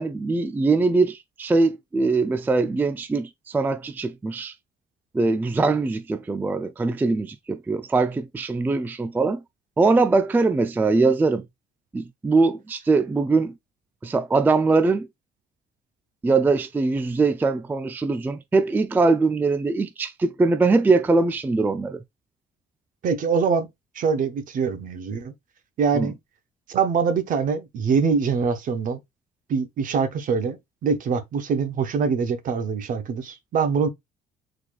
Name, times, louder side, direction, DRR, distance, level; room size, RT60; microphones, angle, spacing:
voice 1, 0.0-4.5 5.1-9.4 9.8-11.4 11.9-13.5 14.0-15.1 16.2-22.0 25.9-26.1, right 3 dB, 10° right, 0.3 m, -22 dB
voice 2, 23.0-23.7 23.9-25.3 25.8-26.2 26.7-29.0 29.5-33.9, right 5 dB, 50° right, 0.8 m, -24 dB
4.0 x 3.1 x 2.4 m
cardioid pair, 110°, 17 cm